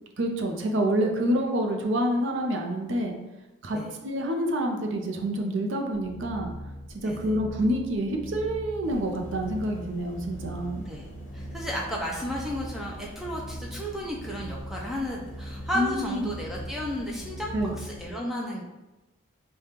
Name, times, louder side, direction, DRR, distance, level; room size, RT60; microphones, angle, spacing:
voice 1, 0.2-3.1 3.6-3.8 4.0-6.5 7.0-10.9 15.7-16.3 17.5-17.7, right 1 dB, 65° right, 2 dB, 0.5 m, -27 dB
sound 1, 5.9-18.0, equal, 30° right, 0.7 m, -41 dB
sound 2, 8.8-18.1, right 1 dB, 65° left, 0.8 m, -46 dB
voice 2, 11.3-18.6, equal, ahead, -3 dB, 0.4 m, -33 dB
5.0 x 2.2 x 2.9 m, 1.0 s
head